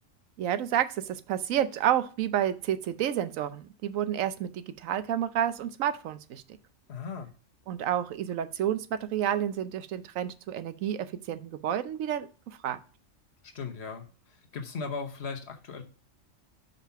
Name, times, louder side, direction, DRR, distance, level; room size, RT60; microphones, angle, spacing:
voice 1, 0.4-6.4 7.7-12.8, right 10 dB, 85° right, 12 dB, 1.0 m, -30 dB
voice 2, 6.9-7.3 13.5-15.8, left 5 dB, 55° left, 4 dB, 1.2 m, -37 dB
5.4 x 5.1 x 5.7 m, 0.37 s
omnidirectional pair, 1.3 m